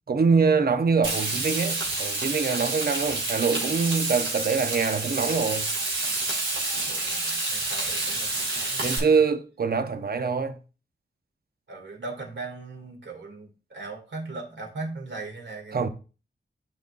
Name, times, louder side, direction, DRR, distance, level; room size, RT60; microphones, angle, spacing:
voice 1, 0.1-5.7 8.8-10.6 15.7-15.9, right 5 dB, 50° right, 0.7 m, -24 dB
Frying (food), 1.0-9.0, right 2 dB, 85° right, 2.4 m, -29 dB
voice 2, 6.9-9.2 11.7-15.9, right 3 dB, 70° right, 2.2 m, -39 dB
11.0 x 3.9 x 2.5 m
wide cardioid pair, 85°, 20 cm